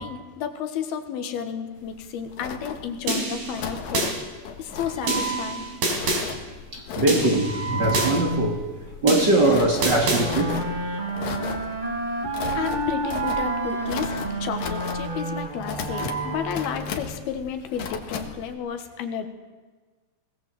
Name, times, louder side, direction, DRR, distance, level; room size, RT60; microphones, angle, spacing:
voice 1, 0.0-4.2 4.6-5.7 12.6-19.3, left 8 dB, 80° left, 7 dB, 3.5 m, -32 dB
sound 1, 1.8-18.5, left 6 dB, 60° left, 2.6 m, -36 dB
sound 2, 3.1-4.1 5.1-6.2 7.1-8.1 9.1-10.2, right 2 dB, 80° right, 6.3 m, -26 dB
voice 2, 5.0-5.6 6.7-8.6 9.0-10.6 13.2-13.8 15.9-16.3, right 2 dB, 35° right, 2 dB, 2.2 m, -23 dB
sound 3, 9.7-17.2, right 2 dB, 20° right, 1.6 m, -30 dB
21.0 x 18.5 x 7.7 m, 1.4 s
omnidirectional pair, 4.3 m